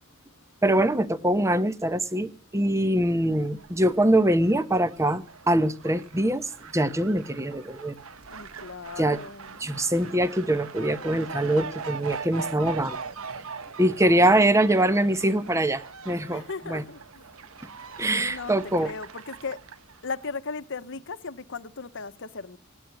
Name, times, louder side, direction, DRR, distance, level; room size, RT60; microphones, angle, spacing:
voice 1, 0.6-7.9 9.0-9.2 9.6-13.0 13.8-16.8 18.0-18.9, right 1 dB, 15° right, 1.0 m, -23 dB
Fowl, 2.9-20.3, right 5 dB, 65° right, 1.0 m, -41 dB
voice 2, 8.3-9.7 14.4-15.6 16.3-17.0 18.1-19.6 20.0-22.6, left 4 dB, 60° left, 1.0 m, -37 dB
18.5 x 9.4 x 7.6 m
head